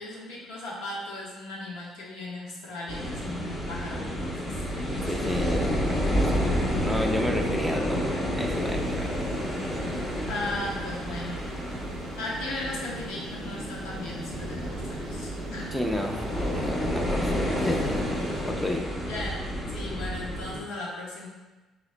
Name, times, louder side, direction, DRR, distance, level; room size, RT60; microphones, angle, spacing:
voice 1, 0.0-4.4 4.7-5.5 10.3-11.5 12.2-15.7 19.1-21.3, left 2 dB, 90° left, -4 dB, 1.1 m, -37 dB
sound 1, 2.9-20.6, equal, 15° left, 0.8 m, -30 dB
voice 2, 5.0-6.2 6.8-8.1 8.3-9.4 15.7-18.0 18.5-18.9, left 1 dB, ahead, 2 dB, 0.5 m, -32 dB
sound 2, 8.5-18.4, right 4 dB, 85° right, 0.4 m, -42 dB
6.2 x 2.9 x 2.2 m, 1.2 s
cardioid pair, 130°, 0 cm